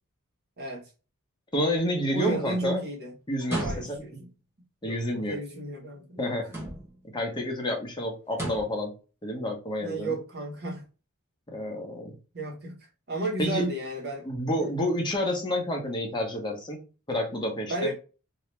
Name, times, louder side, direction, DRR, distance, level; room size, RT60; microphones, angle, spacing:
voice 1, 1.5-2.8 3.3-4.0 4.8-5.4 6.2-6.5 7.0-8.9 9.2-10.1 11.5-12.1 13.4-13.6 14.2-16.8 17.1-17.9, left 1 dB, 20° left, 0.9 m, -29 dB
voice 2, 2.1-3.1 3.6-4.3 4.8-6.3 9.8-10.8 12.3-12.8 13.1-14.2 14.6-14.7 17.7-17.9, right 2 dB, 45° right, 1.4 m, -33 dB
sound 1, 3.4-4.2 6.4-7.1 8.3-8.8, right 1 dB, 10° right, 1.1 m, -34 dB
2.9 x 2.7 x 3.2 m
head